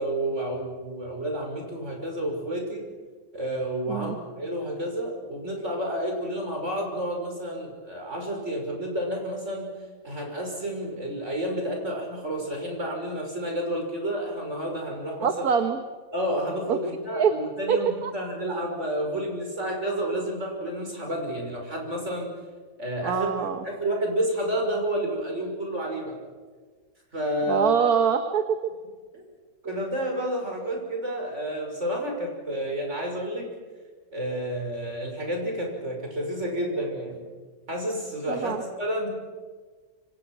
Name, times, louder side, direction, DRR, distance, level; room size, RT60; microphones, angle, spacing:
voice 1, 0.0-2.9 3.3-9.7 10.0-15.3 16.1-22.3 22.8-23.3 23.6-26.2 27.1-27.7 29.1-29.2 29.6-33.5 34.1-37.2 37.7-39.1, right 1 dB, 40° right, 1 dB, 6.3 m, -30 dB
voice 2, 15.2-15.8 16.7-16.8 17.1-17.3 17.7-18.1 23.0-23.6 27.5-28.7 38.3-38.6, right 7 dB, 60° right, 7 dB, 1.7 m, -24 dB
27.5 x 25.0 x 6.2 m, 1.4 s
omnidirectional pair, 1.8 m